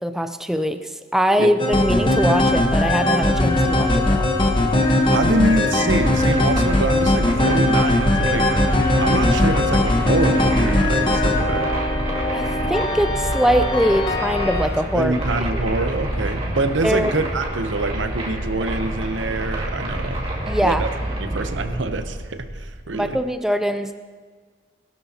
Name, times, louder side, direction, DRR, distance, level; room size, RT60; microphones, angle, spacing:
voice 1, 0.0-4.3 12.3-15.1 16.8-17.1 20.5-20.8 22.9-23.9, equal, ahead, 8 dB, 0.5 m, -22 dB
sound 1, 1.6-14.7, left 1 dB, 25° left, 1.1 m, -20 dB
voice 2, 5.1-8.5 9.0-11.7 14.9-20.2 20.6-20.9 21.2-23.2, right 2 dB, 85° right, 9 dB, 0.8 m, -25 dB
sound 2, 5.9-23.2, right 1 dB, 30° right, 2.1 m, -28 dB
20.5 x 12.5 x 2.9 m, 1.5 s
head